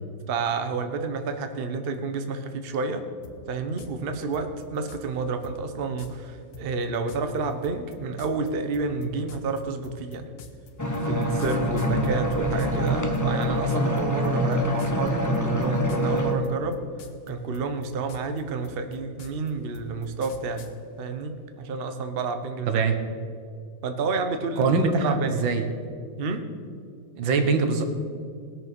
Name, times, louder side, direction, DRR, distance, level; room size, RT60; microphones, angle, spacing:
voice 1, 0.3-3.0 3.5-10.3 10.9-16.8 17.3-20.6 21.0-21.3 21.6-22.8 23.8-24.7 25.0-25.4 26.2-26.4, right 4 dB, 40° right, 7 dB, 0.9 m, -30 dB
sound 1, 3.2-3.4 3.8-3.9 4.3-5.0 5.4-5.6 6.0-6.1 6.5-12.9 13.1-14.0 14.2-14.5 14.8-15.1 15.3-16.2 16.4-17.3 17.5-20.7, left 7 dB, 80° left, 1.7 m, -46 dB
sound 2, 10.8-16.3, equal, 10° left, 1.0 m, -25 dB
voice 2, 22.7-23.0 24.6-25.7 27.2-27.8, right 4 dB, 80° right, 6 dB, 1.9 m, -23 dB
19.0 x 6.8 x 6.0 m, 2.3 s
omnidirectional pair, 2.1 m